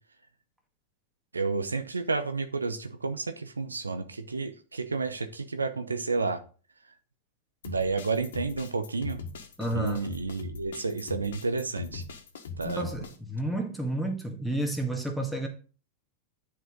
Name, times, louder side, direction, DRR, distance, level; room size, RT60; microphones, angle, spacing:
voice 1, 1.3-6.4 7.6-9.2 9.7-12.0 12.6-12.9, right 4 dB, 75° right, 0.8 m, -31 dB
sound 1, 7.6-13.1, left 4 dB, 60° left, 1.5 m, -40 dB
voice 2, 9.6-10.1 12.6-15.5, right 1 dB, ahead, 1.8 m, -31 dB
10.0 x 4.8 x 3.9 m
figure-of-eight pair, 90°, 0 cm